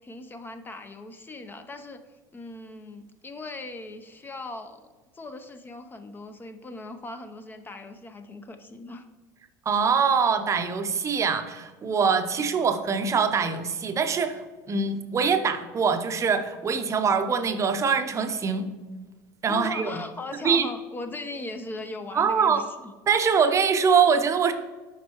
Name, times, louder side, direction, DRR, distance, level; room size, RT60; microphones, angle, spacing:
voice 1, 0.0-2.0 2.3-4.8 5.1-9.1 19.5-22.9, left 2 dB, 20° left, 8 dB, 0.6 m, -39 dB
voice 2, 9.7-18.7 19.4-19.9 20.4-20.7 22.1-22.6 23.1-24.5, right 6 dB, 30° right, 8 dB, 0.7 m, -23 dB
7.3 x 5.3 x 2.9 m, 1.3 s
hypercardioid pair, 90°, 10 cm